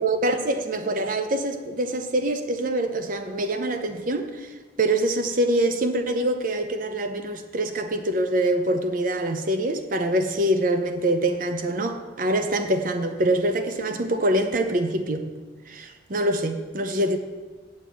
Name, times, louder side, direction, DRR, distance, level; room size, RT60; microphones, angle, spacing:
voice 1, 0.0-4.5 4.8-15.3 15.7-17.2, right 1 dB, 50° right, 7 dB, 0.7 m, -25 dB
8.8 x 7.3 x 6.1 m, 1.3 s
head